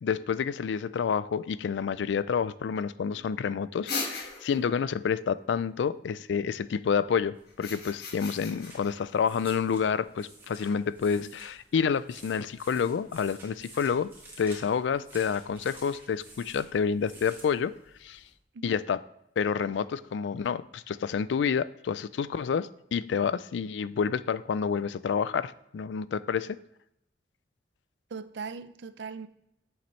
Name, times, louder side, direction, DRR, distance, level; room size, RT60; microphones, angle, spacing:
voice 1, 0.0-14.1 14.4-17.7 18.0-18.2 18.6-19.0 19.4-26.6, left 6 dB, 80° left, 17 dB, 0.3 m, -29 dB
sound 1, 3.9-4.7 7.5-8.9, left 3 dB, 60° left, 1.5 m, -36 dB
sound 2, 7.3-18.3, right 1 dB, 15° right, 2.3 m, -52 dB
voice 2, 28.1-29.3, right 5 dB, 75° right, 14 dB, 0.5 m, -40 dB
8.8 x 7.2 x 3.2 m, 0.80 s
head